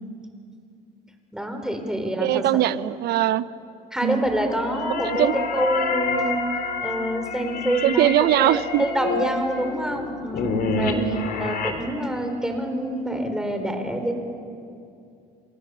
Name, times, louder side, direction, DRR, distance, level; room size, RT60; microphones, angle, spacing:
voice 1, 1.3-2.6 3.9-6.4 6.8-8.1 8.3-11.0 11.4-14.1, equal, 5° right, 5 dB, 4.0 m, -26 dB
voice 2, 2.2-3.4 4.0-4.3 5.0-5.3 7.8-8.8 10.8-11.3, right 14 dB, 75° right, 15 dB, 0.8 m, -21 dB
sound 1, 4.3-11.7, left 3 dB, 65° left, 3.6 m, -28 dB
30.0 x 26.5 x 6.9 m, 2.5 s
cardioid pair, 110°, 17 cm